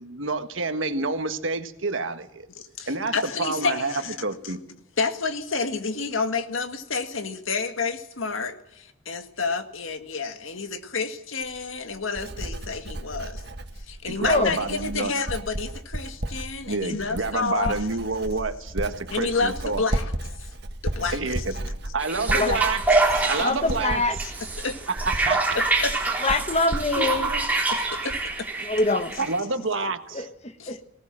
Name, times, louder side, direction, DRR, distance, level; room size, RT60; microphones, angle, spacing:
voice 1, 0.0-2.5 2.9-3.9 4.2-4.6 14.1-15.1 16.7-19.8 21.1-22.8 23.1-24.0 25.2-25.6 27.0-27.5 29.2-30.3, right 3 dB, 80° right, 8 dB, 1.5 m, -28 dB
voice 2, 2.6-4.2 4.4-4.6 5.0-13.4 13.9-17.9 19.1-20.1 20.4-20.5 20.8-21.3 23.2-23.5 24.6-24.8 25.5-25.9 27.7-28.5 28.9-29.0 30.6-30.8, left 4 dB, 90° left, 7 dB, 1.9 m, -29 dB
Writing, 11.4-28.5 28.8-29.2, right 1 dB, 55° right, 1.6 m, -34 dB
voice 3, 14.2-14.6 22.3-22.7 23.3-24.2 26.2-27.3 28.6-29.1 30.1-30.8, left 2 dB, 30° left, 9 dB, 1.3 m, -25 dB
sound 1, 22.0-29.4, right 3 dB, 10° right, 3.8 m, -26 dB
19.0 x 18.5 x 7.6 m, 0.83 s
head